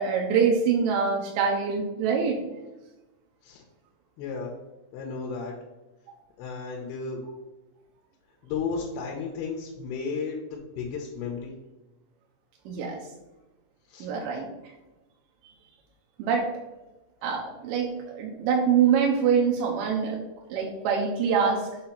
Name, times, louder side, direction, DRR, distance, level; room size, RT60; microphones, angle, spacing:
voice 1, 0.0-2.4 12.7-13.0 14.0-14.5 16.2-16.5 17.2-20.2 20.5-21.7, right 6 dB, 80° right, -1 dB, 2.0 m, -24 dB
voice 2, 4.2-4.5 4.9-5.5 6.4-7.2 8.4-11.5 13.9-14.1, left 5 dB, 80° left, 0 dB, 2.6 m, -33 dB
6.8 x 2.9 x 5.7 m, 1.1 s
omnidirectional pair, 4.8 m